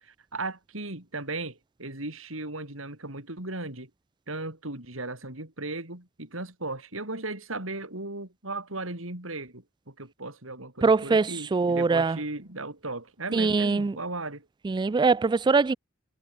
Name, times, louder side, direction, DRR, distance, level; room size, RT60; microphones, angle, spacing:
voice 1, 0.0-3.9 4.3-14.5, right 2 dB, 75° right, 5.8 m, -36 dB
voice 2, 10.8-11.3 11.5-12.2 13.3-13.9 14.6-15.8, right 4 dB, 20° right, 0.3 m, -22 dB
head